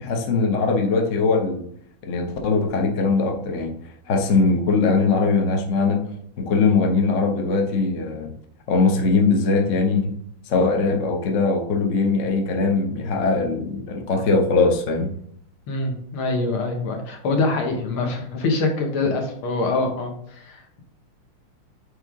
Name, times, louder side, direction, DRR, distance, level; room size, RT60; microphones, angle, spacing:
voice 1, 0.0-1.7 2.0-3.8 4.1-6.0 6.4-8.3 8.7-10.1 10.5-15.1, left 4 dB, 50° left, 3 dB, 0.9 m, -21 dB
voice 2, 15.7-20.8, left 3 dB, 75° left, 2 dB, 2.1 m, -24 dB
9.1 x 3.6 x 3.7 m, 0.67 s
omnidirectional pair, 2.4 m